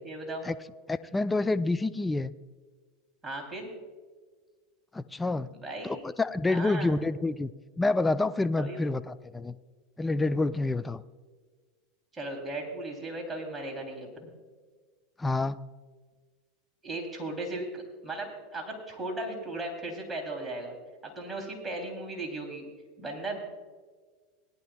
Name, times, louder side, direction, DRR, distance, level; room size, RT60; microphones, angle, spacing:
voice 1, 0.0-0.4 3.2-3.7 5.5-6.0 6.5-6.9 8.6-8.8 12.1-14.3 16.8-20.7 21.0-22.6 23.0-23.4, right 2 dB, 15° right, 0 dB, 3.2 m, -36 dB
voice 2, 0.9-2.3 4.9-5.5 5.8-7.5 7.8-9.6 10.0-11.0 15.2-15.6, left 2 dB, 15° left, 14 dB, 0.4 m, -28 dB
19.5 x 12.0 x 2.3 m, 1.5 s
hypercardioid pair, 100°, 0 cm